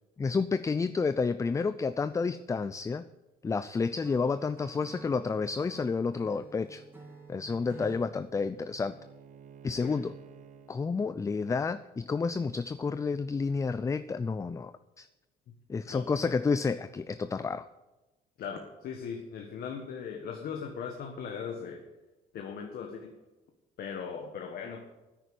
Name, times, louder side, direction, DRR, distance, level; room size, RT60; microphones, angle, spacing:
voice 1, 0.2-3.0 3.4-6.8 7.3-9.0 9.6-10.1 10.7-15.1 15.7-17.7, left 4 dB, 20° left, 13 dB, 0.4 m, -30 dB
Acoustic guitar / Strum, 4.0-8.1, right 3 dB, 15° right, 3.1 m, -50 dB
Bowed string instrument, 6.9-10.8, right 7 dB, 50° right, 1.1 m, -54 dB
voice 2, 18.4-21.8 22.3-23.2 23.8-24.9, left 6 dB, 65° left, 3 dB, 1.6 m, -39 dB
10.0 x 9.2 x 8.8 m, 1.1 s
cardioid pair, 110°, 17 cm